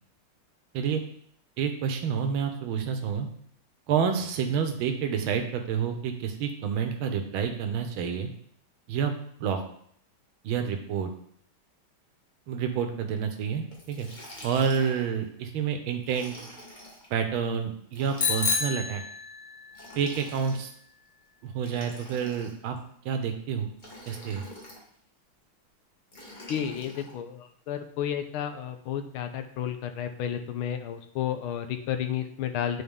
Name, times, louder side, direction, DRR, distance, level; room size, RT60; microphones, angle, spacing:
voice 1, 1.6-3.3 3.9-8.3 8.9-9.1 9.4-9.6 10.4-11.1 12.5-14.1 14.4-16.4 17.1-19.0 19.9-20.7 21.4-22.8 23.0-23.7 24.1-24.4, right 7 dB, 80° right, 5 dB, 1.6 m, -28 dB
Liquid, 13.7-15.2 16.0-17.1 17.9-18.8 19.7-20.8 21.6-22.8 23.8-24.8 26.1-27.1, left 1 dB, 25° left, 1.3 m, -46 dB
Bicycle bell, 18.2-19.7, left 5 dB, 60° left, 0.6 m, -28 dB
voice 2, 26.5-32.8, left 9 dB, 85° left, 8 dB, 1.5 m, -32 dB
9.3 x 4.0 x 3.6 m, 0.65 s
omnidirectional pair, 2.3 m